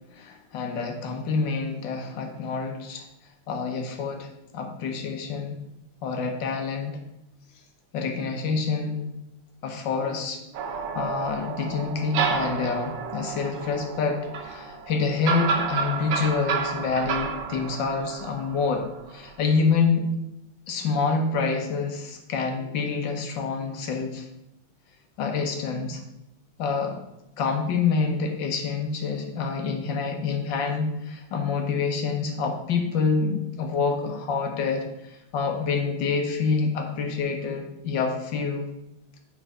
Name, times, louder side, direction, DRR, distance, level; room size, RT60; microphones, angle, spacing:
voice 1, 0.1-3.0 3.5-4.3 4.5-5.5 6.0-7.0 7.9-9.1 9.6-10.4 10.9-20.1 20.7-24.3 25.2-26.0 26.6-27.0 27.4-38.7, left 5 dB, 70° left, 3 dB, 1.5 m, -27 dB
sound 1, 10.5-19.4, right 5 dB, 70° right, 1.4 m, -30 dB
4.6 x 4.5 x 6.0 m, 0.87 s
omnidirectional pair, 2.2 m